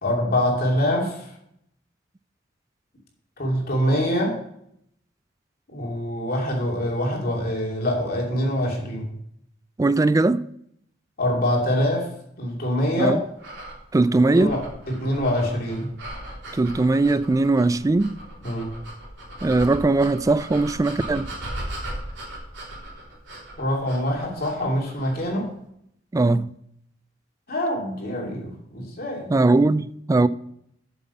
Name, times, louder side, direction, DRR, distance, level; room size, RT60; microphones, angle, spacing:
voice 1, 0.0-1.3 3.4-4.4 5.7-9.1 11.2-13.2 14.2-15.9 18.4-18.7 23.6-25.5 27.5-29.3, equal, 55° left, 2.7 m, -25 dB
voice 2, 9.8-10.5 13.0-13.2 13.9-14.6 16.5-18.2 19.4-21.3 26.1-26.5 29.3-30.3, right 2 dB, 20° right, 0.3 m, -20 dB
sound 1, 13.4-25.3, right 1 dB, 70° right, 3.4 m, -38 dB
8.2 x 7.2 x 5.5 m
head